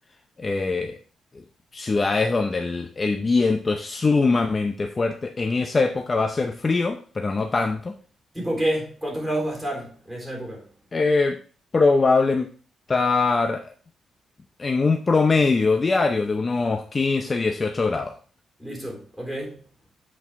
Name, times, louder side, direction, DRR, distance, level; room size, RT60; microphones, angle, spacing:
voice 1, 0.4-1.0 1.7-7.9 10.9-11.4 11.7-12.5 12.9-13.7 14.6-18.1, left 3 dB, 30° left, 5 dB, 0.6 m, -22 dB
voice 2, 8.3-10.6 18.6-19.6, right 1 dB, 5° right, -1 dB, 3.6 m, -29 dB
8.2 x 4.7 x 3.6 m, 0.39 s
cardioid pair, 115°, 0 cm